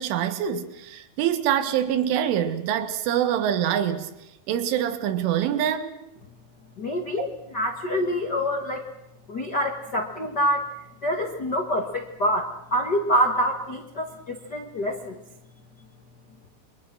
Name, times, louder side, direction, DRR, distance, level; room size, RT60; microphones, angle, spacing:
voice 1, 0.0-4.1 4.5-5.9 7.2-7.3, right 10 dB, 90° right, 4.0 m, -25 dB
voice 2, 6.8-8.8 9.3-10.7 11.0-15.2, equal, 90° left, 0.9 m, -26 dB
29.0 x 23.5 x 6.2 m
omnidirectional pair, 5.4 m